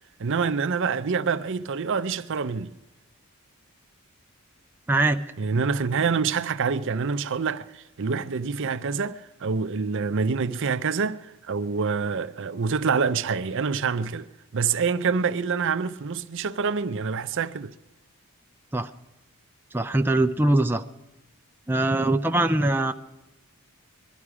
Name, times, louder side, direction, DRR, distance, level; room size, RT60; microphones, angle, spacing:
voice 1, 0.2-2.7 5.4-17.7, right 5 dB, 55° right, 0.6 m, -26 dB
voice 2, 4.9-5.2 18.7-18.9 19.7-20.8 21.7-22.9, right 2 dB, 10° right, 0.5 m, -22 dB
21.5 x 12.5 x 4.9 m
head